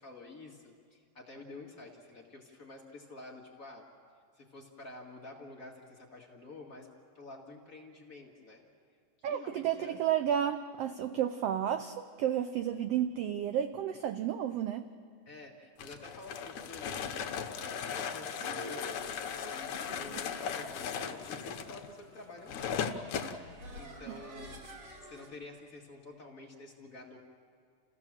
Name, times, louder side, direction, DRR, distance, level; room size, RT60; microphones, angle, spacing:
voice 1, 0.0-3.9 4.3-6.9 7.1-8.6 9.3-10.0 15.2-17.3 17.6-24.6 25.0-27.2, left 2 dB, 30° left, -1 dB, 1.8 m, -49 dB
voice 2, 9.2-14.9 24.1-24.2, right 10 dB, 85° right, 9 dB, 1.3 m, -32 dB
sound 1, 15.8-23.4, left 7 dB, 75° left, 2.3 m, -37 dB
sound 2, 17.9-25.3, equal, 50° right, 3.3 m, -49 dB
29.0 x 15.5 x 7.4 m, 2.3 s
omnidirectional pair, 3.5 m